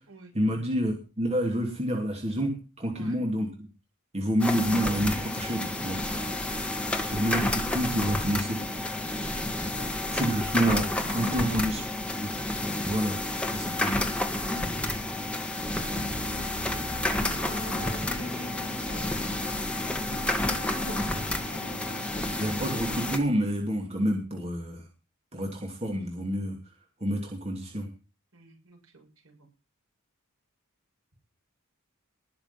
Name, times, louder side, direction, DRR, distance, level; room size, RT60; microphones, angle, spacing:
voice 1, 0.3-2.5 2.8-3.5 4.1-6.0 7.0-8.6 10.1-10.9 11.1-11.8 12.2-12.3 12.9-13.2 13.5-14.0 22.4-24.9 25.3-26.6 27.0-27.9, equal, 30° right, 1 dB, 2.8 m, -28 dB
sound 1, 4.4-23.2, left 1 dB, 5° left, 2.0 m, -30 dB
voice 2, 5.9-7.7 9.1-10.2 11.0-11.7 15.6-19.3 28.3-29.5, right 3 dB, 70° right, 1 dB, 7.1 m, -50 dB
sound 2, 15.8-22.5, left 1 dB, 45° left, 2.8 m, -42 dB
20.0 x 6.9 x 5.9 m, 0.32 s
head